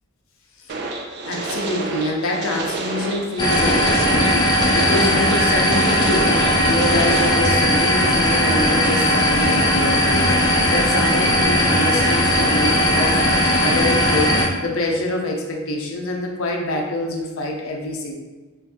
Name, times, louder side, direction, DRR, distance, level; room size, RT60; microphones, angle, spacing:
sound 1, 0.7-7.3, right 3 dB, 50° right, 0.4 m, -29 dB
voice 1, 1.2-18.1, left 1 dB, 65° left, 1 dB, 0.6 m, -25 dB
sound 2, 3.4-14.5, equal, 20° left, 0.4 m, -18 dB
3.4 x 2.5 x 2.6 m, 1.2 s
head